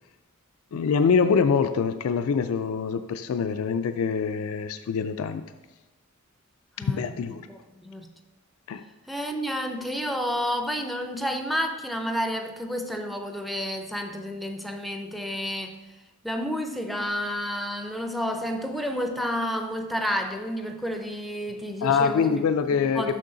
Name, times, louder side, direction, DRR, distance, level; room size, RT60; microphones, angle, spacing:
voice 1, 0.7-5.4 6.8-7.5 8.7-8.8 21.8-23.2, left 6 dB, 75° left, 10 dB, 0.3 m, -24 dB
voice 2, 7.5-8.1 9.1-15.8 16.2-22.5 22.9-23.2, equal, ahead, 5 dB, 0.4 m, -30 dB
6.4 x 6.1 x 3.8 m, 1.2 s
head